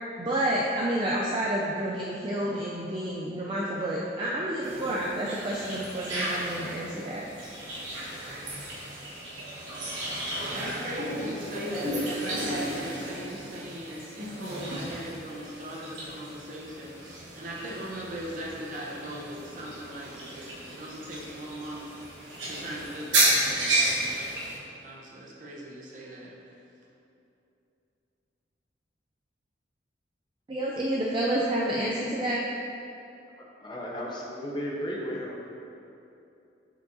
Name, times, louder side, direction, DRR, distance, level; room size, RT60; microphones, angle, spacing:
voice 1, 0.2-7.3 30.5-32.4, right 1 dB, 25° right, -4 dB, 0.4 m, -29 dB
sound 1, 4.6-24.6, right 1 dB, 80° right, 1.3 m, -33 dB
voice 2, 10.1-24.3 24.8-26.6, equal, 40° right, -4 dB, 0.8 m, -39 dB
voice 3, 33.6-35.4, equal, 25° left, -3 dB, 0.6 m, -34 dB
7.8 x 4.6 x 2.7 m, 2.8 s
head